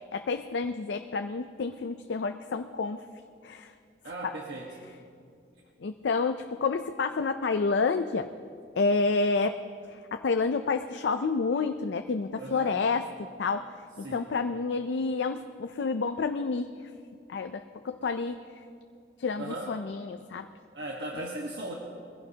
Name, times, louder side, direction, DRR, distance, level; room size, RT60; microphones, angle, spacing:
voice 1, 0.1-3.0 3.4-3.7 4.2-4.3 5.8-8.3 8.8-9.6 9.9-13.1 13.4-16.7 17.3-18.4 19.2-20.5 21.2-21.3, left 4 dB, 75° left, 8 dB, 0.4 m, -29 dB
voice 2, 4.0-4.8 12.4-12.8 14.0-14.3 19.4-19.8 20.7-21.7, right 1 dB, 70° right, -2 dB, 1.3 m, -37 dB
22.0 x 16.0 x 2.8 m, 2.4 s
head